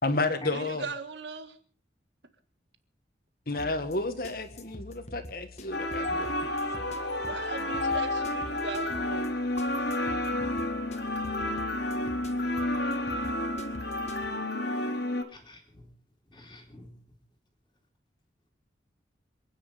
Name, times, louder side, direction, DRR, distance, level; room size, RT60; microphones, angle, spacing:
voice 1, 0.0-0.8 3.5-6.3, left 2 dB, 50° left, 9 dB, 1.8 m, -31 dB
voice 2, 0.5-1.6 6.6-9.3, right 3 dB, 75° right, 9 dB, 1.8 m, -39 dB
sound 1, 3.6-14.3, left 2 dB, 35° left, 1.7 m, -46 dB
sound 2, 5.7-15.2, left 1 dB, 70° left, 2.8 m, -30 dB
voice 3, 15.3-15.9 16.3-17.2, left 1 dB, 20° left, -4 dB, 2.9 m, -47 dB
27.0 x 10.0 x 5.2 m, 0.43 s
head